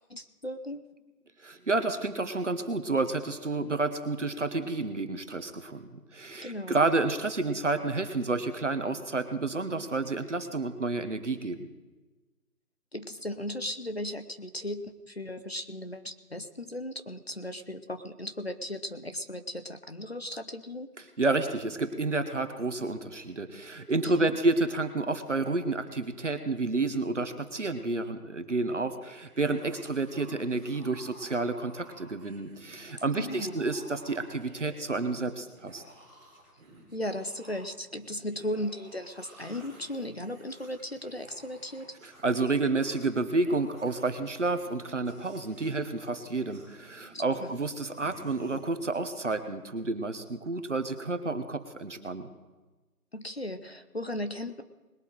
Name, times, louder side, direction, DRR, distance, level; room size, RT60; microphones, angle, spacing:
voice 1, 0.1-0.8 6.4-6.8 12.9-20.9 24.0-24.4 33.2-33.6 36.9-41.9 47.1-47.6 53.1-54.6, left 1 dB, 40° left, 9 dB, 0.8 m, -36 dB
voice 2, 1.4-11.7 21.2-35.8 42.0-52.3, right 3 dB, 50° right, 9 dB, 1.3 m, -30 dB
sound 1, 29.2-48.6, right 1 dB, 5° right, 2.8 m, -54 dB
21.0 x 7.9 x 4.7 m, 1.2 s
figure-of-eight pair, 175°, 46 cm